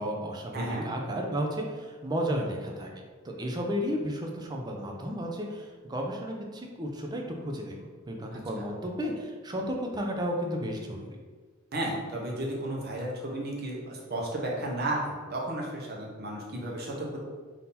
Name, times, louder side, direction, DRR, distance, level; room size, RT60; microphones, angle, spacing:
voice 1, 0.0-2.9 3.2-7.8 8.1-11.2, equal, 20° right, 1 dB, 0.4 m, -33 dB
voice 2, 0.5-0.9 8.3-8.7 11.7-17.2, right 1 dB, 50° right, -2 dB, 0.9 m, -33 dB
3.7 x 2.7 x 4.1 m, 1.4 s
head